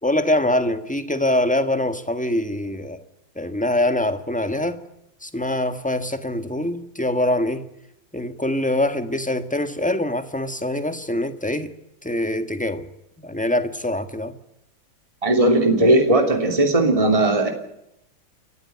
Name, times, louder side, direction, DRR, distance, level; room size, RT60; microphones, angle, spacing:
voice 1, 0.0-3.0 3.3-4.8 5.2-7.6 8.1-11.7 12.0-12.9 13.2-14.3, left 1 dB, 5° left, 1.3 m, -24 dB
voice 2, 15.2-17.5, right 2 dB, 15° right, 3.0 m, -17 dB
30.0 x 15.0 x 9.6 m
omnidirectional pair, 2.2 m